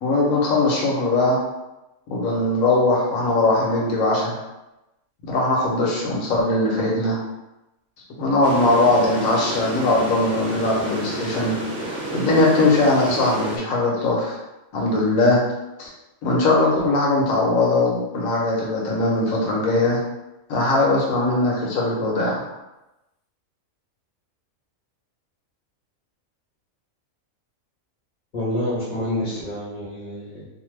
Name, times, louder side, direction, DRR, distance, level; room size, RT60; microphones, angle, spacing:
voice 1, 0.0-1.4 2.1-4.3 5.2-7.2 8.2-11.5 12.1-14.4 14.7-15.4 15.8-15.9 16.2-20.0 20.5-22.4, left 2 dB, 75° left, -3 dB, 1.2 m, -20 dB
sound 1, 8.4-13.6, right 2 dB, 65° right, 1.0 m, -30 dB
voice 2, 28.3-30.5, left 1 dB, 40° left, -7 dB, 0.8 m, -27 dB
2.7 x 2.1 x 3.1 m, 0.98 s
omnidirectional pair, 1.4 m